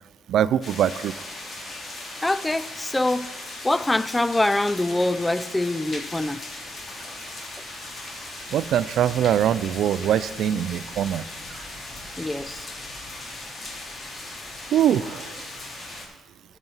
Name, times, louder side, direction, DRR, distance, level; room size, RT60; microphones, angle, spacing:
voice 1, 0.3-1.1 8.5-11.2 14.7-15.3, right 10 dB, 75° right, 0.4 m, -22 dB
sound 1, 0.6-16.0, left 2 dB, 40° left, 2.9 m, -38 dB
voice 2, 2.2-3.3 3.6-6.4 12.2-12.7, left 2 dB, 15° left, 0.4 m, -24 dB
13.5 x 6.0 x 5.6 m
cardioid pair, 90°, 0 cm